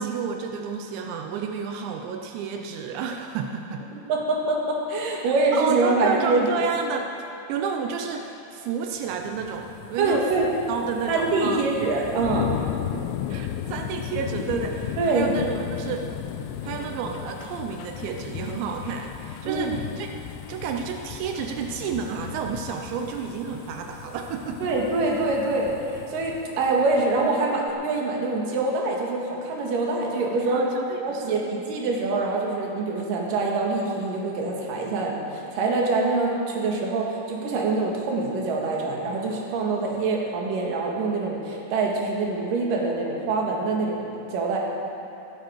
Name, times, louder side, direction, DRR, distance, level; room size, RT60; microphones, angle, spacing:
voice 1, 0.0-3.8 5.5-7.2 7.5-11.6 12.8-16.1 16.6-20.1 20.5-24.7 30.5-31.4, right 6 dB, 85° right, 3 dB, 3.1 m, -31 dB
voice 2, 3.9-6.6 10.0-10.5 11.1-12.5 15.0-15.3 19.4-19.7 24.6-30.7 31.0-44.6, right 3 dB, 55° right, -1 dB, 3.1 m, -25 dB
sound 1, 9.1-27.3 27.7-27.8, left 10 dB, 90° left, 3.0 m, -35 dB
16.0 x 15.5 x 4.6 m, 2.8 s
omnidirectional pair, 5.1 m